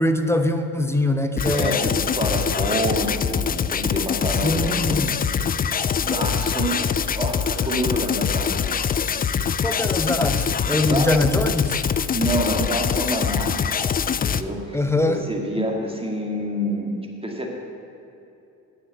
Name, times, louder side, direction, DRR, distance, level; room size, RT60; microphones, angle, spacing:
voice 1, 0.0-1.9 4.4-5.2 9.5-11.8 14.7-15.2, left 1 dB, 5° left, 7 dB, 0.9 m, -23 dB
sound 1, 1.4-14.4, left 7 dB, 25° left, 0.3 m, -24 dB
voice 2, 1.5-5.0 5.9-6.8 7.2-9.0 10.7-11.3 12.1-13.6 14.2-16.9 17.2-17.5, right 1 dB, 15° right, 0 dB, 2.1 m, -27 dB
9.3 x 6.4 x 8.1 m, 2.8 s
hypercardioid pair, 50°, 41 cm